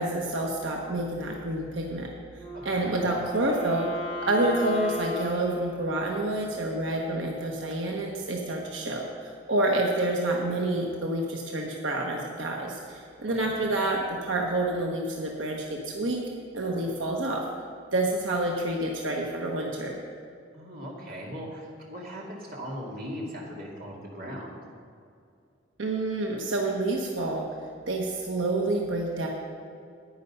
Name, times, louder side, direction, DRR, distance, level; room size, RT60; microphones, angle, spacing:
voice 1, 0.0-2.1 2.6-3.9 4.2-16.2 16.5-17.4 17.9-20.0 25.8-27.4 27.9-29.3, right 2 dB, 85° right, -1 dB, 1.2 m, -28 dB
Wind instrument woodwind instrument, 2.3-6.6, left 3 dB, 5° right, 2.4 m, -38 dB
voice 2, 2.5-3.1 13.2-13.6 20.5-24.6, equal, 50° right, -3 dB, 2.5 m, -39 dB
10.5 x 9.7 x 5.5 m, 2.3 s
head